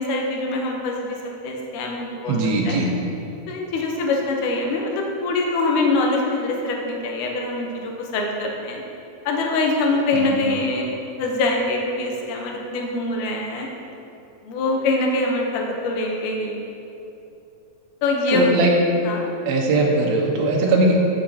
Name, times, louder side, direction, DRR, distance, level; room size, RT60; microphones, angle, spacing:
voice 1, 0.0-2.4 2.7-2.8 3.5-8.8 9.3-10.9 11.2-13.7 14.4-16.6 18.0-18.5 19.1-19.3, left 2 dB, 70° left, 0 dB, 2.0 m, -24 dB
voice 2, 2.3-2.9 10.1-10.4 18.3-18.8 19.5-21.0, right 2 dB, 75° right, -1 dB, 2.8 m, -20 dB
12.5 x 6.0 x 2.8 m, 2.8 s
omnidirectional pair, 4.4 m